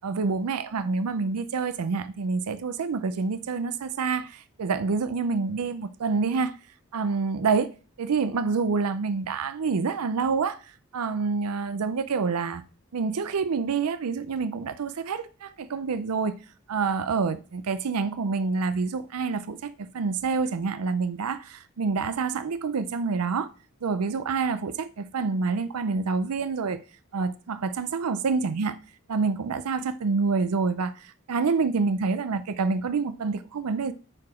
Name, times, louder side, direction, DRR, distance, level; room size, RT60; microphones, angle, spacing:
voice 1, 0.0-6.5 6.9-7.7 8.0-12.6 12.9-16.3 16.7-23.5 23.8-26.8 27.1-28.8 29.1-33.9, right 4 dB, 90° right, 0.5 m, -27 dB
9.6 x 4.8 x 4.8 m
head